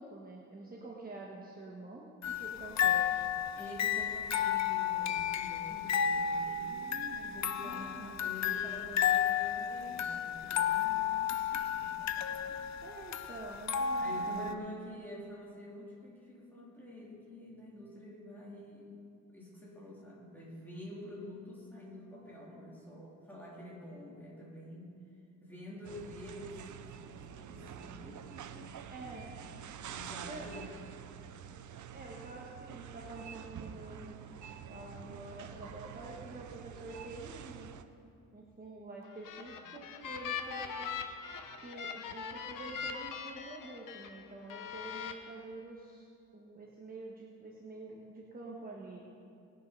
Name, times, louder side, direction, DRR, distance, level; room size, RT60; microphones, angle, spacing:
voice 1, 0.0-3.0 7.6-8.1 12.8-14.5 28.9-29.3 30.2-30.5 31.9-34.2 34.7-37.7 38.3-40.9 41.6-46.1 46.3-49.0, right 2 dB, 30° right, -3 dB, 1.2 m, -47 dB
sound 1, 2.2-14.5, left 8 dB, 60° left, 0.7 m, -32 dB
voice 2, 3.6-12.6 14.0-18.9 19.3-24.9 25.4-26.6 27.0-28.8 29.9-30.7, left 1 dB, 5° left, -6 dB, 3.6 m, -47 dB
sound 2, 25.8-37.8, right 8 dB, 65° right, 0.6 m, -47 dB
sound 3, 39.0-44.1 44.5-45.1, left 7 dB, 90° left, 1.0 m, -41 dB
19.5 x 6.6 x 5.4 m, 2.5 s
cardioid pair, 125°, 32 cm